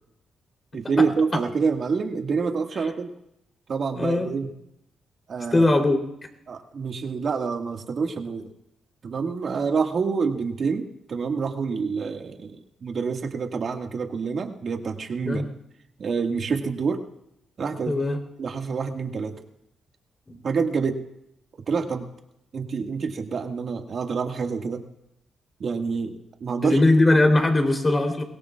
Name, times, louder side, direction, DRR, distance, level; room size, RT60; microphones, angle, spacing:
voice 1, 0.7-3.1 3.7-4.5 5.3-5.7 6.5-8.5 9.0-15.4 16.0-17.0 17.6-18.0 18.4-19.4 20.4-21.0 21.7-22.0 22.5-24.8 25.6-26.8, right 5 dB, 55° right, 3 dB, 1.8 m, -27 dB
voice 2, 3.9-4.3 5.5-6.0 15.2-15.4 17.9-18.2 20.3-20.4 26.6-28.2, left 2 dB, 25° left, 3 dB, 3.4 m, -20 dB
23.0 x 18.0 x 2.4 m, 0.81 s
cardioid pair, 80°, 0 cm